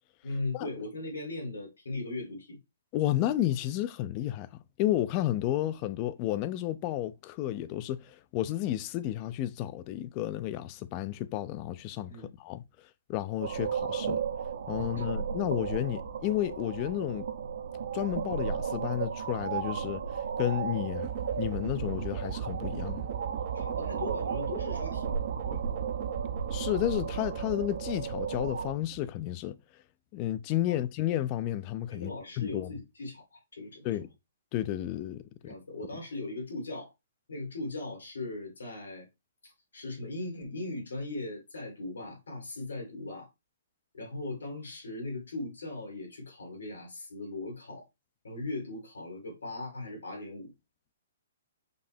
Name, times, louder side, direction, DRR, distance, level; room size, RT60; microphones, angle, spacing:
voice 1, 0.2-2.6 12.1-12.3 14.8-15.1 23.5-25.6 30.7-30.8 31.9-34.0 35.4-36.9 37.3-39.1 39.4-43.3 43.9-47.9 48.2-50.5, left 2 dB, 90° left, 2.3 m, -39 dB
voice 2, 2.9-4.5 4.8-12.1 12.4-12.6 13.1-14.2 14.7-17.3 17.9-20.0 20.4-21.1 21.4-23.1 26.5-29.6 30.1-32.1 32.4-32.7 33.8-34.1 34.5-35.5, left 13 dB, 35° left, 0.4 m, -32 dB
sound 1, 13.4-28.7, right 6 dB, 75° right, 0.9 m, -35 dB
sound 2, 21.0-29.2, right 10 dB, 40° right, 0.5 m, -38 dB
5.4 x 2.0 x 4.4 m
hypercardioid pair, 145°, 0 cm